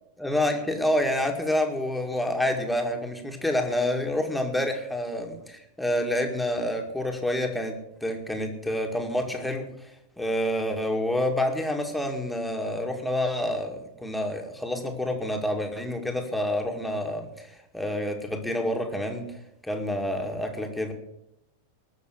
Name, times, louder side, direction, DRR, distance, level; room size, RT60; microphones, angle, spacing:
voice 1, 0.2-9.7 10.2-17.3 17.7-19.3 19.6-20.9, left 1 dB, 5° left, 3 dB, 2.1 m, -28 dB
20.0 x 6.8 x 6.3 m, 0.86 s
figure-of-eight pair, 90°, 0 cm